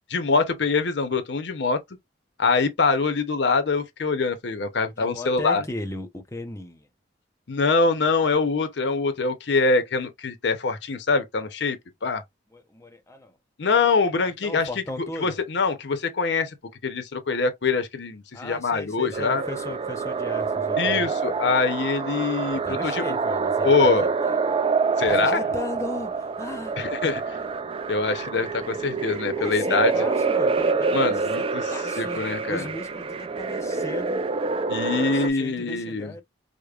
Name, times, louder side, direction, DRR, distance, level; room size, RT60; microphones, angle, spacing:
voice 1, 0.1-1.8 2.4-5.6 7.5-11.8 12.0-12.2 13.6-14.7 15.2-16.5 16.8-19.4 20.8-23.1 23.6-24.1 25.0-25.4 26.8-27.4 27.9-29.9 30.9-31.7 32.0-32.7 34.7-36.1, left 4 dB, 60° left, 0.6 m, -24 dB
voice 2, 5.0-6.9 12.5-13.4 14.2-15.3 18.3-21.1 22.5-24.4 25.1-27.1 27.4-27.5 29.4-34.2 34.8-36.2, left 1 dB, 15° left, 0.6 m, -37 dB
sound 1, 19.1-35.3, right 4 dB, 30° right, 0.3 m, -26 dB
4.9 x 2.1 x 2.3 m
head